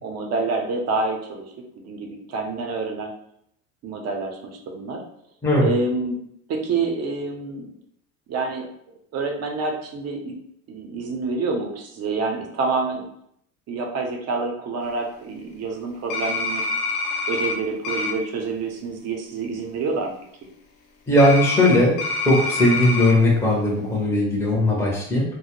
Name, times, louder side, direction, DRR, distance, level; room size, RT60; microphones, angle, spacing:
voice 1, 0.0-1.4 1.8-3.1 3.8-5.0 5.6-6.2 6.5-7.7 8.3-8.7 9.1-10.3 10.7-13.1 13.7-16.6 17.3-20.1, right 3 dB, 40° right, 2 dB, 0.6 m, -27 dB
sound 1, 16.1-17.5 17.8-18.1 21.2-23.1, left 3 dB, 50° left, 0.6 m, -26 dB
voice 2, 21.1-22.0 22.2-25.2, left 1 dB, 5° left, -4 dB, 0.7 m, -18 dB
2.2 x 2.0 x 2.9 m, 0.71 s
supercardioid pair, 100°, 40 cm